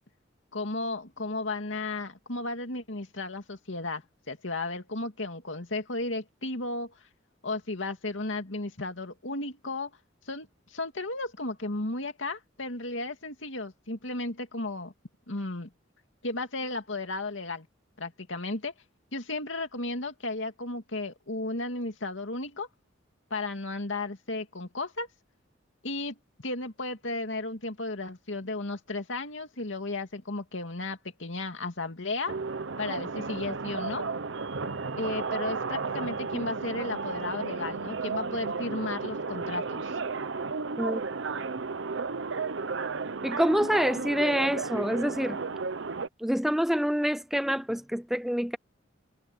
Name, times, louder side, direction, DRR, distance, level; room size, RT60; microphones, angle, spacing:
voice 1, 0.5-4.0 4.3-6.9 7.4-9.9 10.3-14.9 15.3-15.7 16.2-17.7 18.0-18.7 19.1-22.7 23.3-25.1 25.8-32.4 32.8-34.1 35.0-40.0, left 2 dB, 75° left, 2.5 m, -34 dB
sound 1, 32.3-46.1, right 4 dB, 70° right, 0.9 m, -33 dB
voice 2, 43.2-45.4 46.2-48.6, equal, ahead, 0.4 m, -26 dB
head